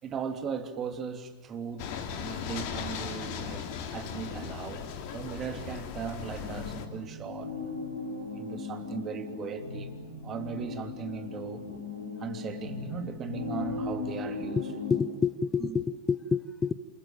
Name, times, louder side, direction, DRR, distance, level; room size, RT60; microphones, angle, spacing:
voice 1, 0.0-4.9 5.1-7.5 8.3-9.9 10.2-11.7 12.2-14.7 15.6-15.8, right 6 dB, 25° right, 3.0 m, -38 dB
sound 1, 1.8-6.9, left 7 dB, 45° left, 3.3 m, -37 dB
sound 2, 6.4-15.0, left 4 dB, 85° right, 6.2 m, -38 dB
voice 2, 14.6-16.7, left 5 dB, 15° left, 1.1 m, -29 dB
29.0 x 28.0 x 7.4 m
figure-of-eight pair, 90°, 0 cm